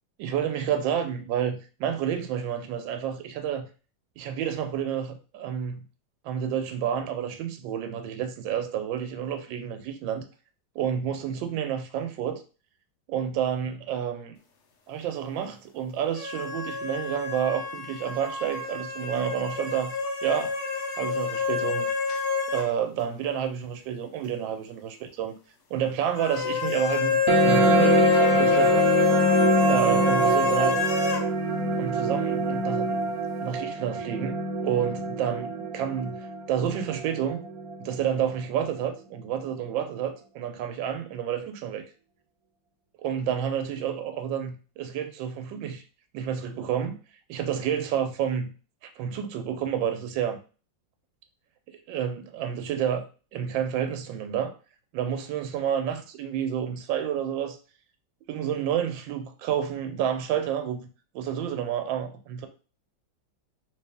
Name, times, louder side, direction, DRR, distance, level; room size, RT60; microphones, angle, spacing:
voice 1, 0.2-3.7 4.2-5.8 6.2-10.2 10.7-12.4 13.1-14.4 14.9-19.9 20.2-20.5 21.0-21.9 22.5-25.3 25.7-28.9 29.7-30.8 31.8-33.0 33.4-34.3 34.6-36.2 36.5-37.4 37.8-41.8 43.0-45.8 46.1-47.0 47.3-48.5 48.8-50.4 51.7-53.0 53.3-54.5 54.9-57.6 58.3-60.8 61.1-62.5, right 9 dB, 90° right, 7 dB, 1.3 m, -29 dB
sound 1, 16.1-22.7 23.0-23.1 26.1-31.3, left 6 dB, 80° left, 0.6 m, -26 dB
sound 2, 27.3-38.3, right 3 dB, 65° right, 1.0 m, -25 dB
3.2 x 2.9 x 3.4 m, 0.35 s
omnidirectional pair, 2.0 m